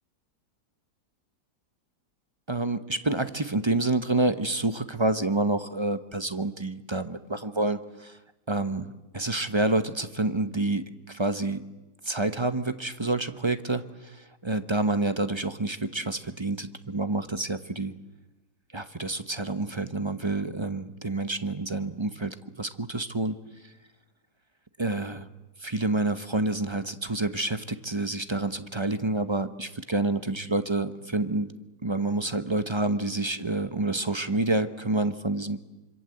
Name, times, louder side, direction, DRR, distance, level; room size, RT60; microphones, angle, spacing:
voice 1, 2.5-8.2 8.5-11.6 12.0-17.9 18.7-23.4 24.8-25.3 25.6-31.5 31.8-35.6, right 2 dB, 25° right, 10 dB, 0.8 m, -28 dB
26.0 x 26.0 x 7.9 m, 1.0 s
omnidirectional pair, 1.7 m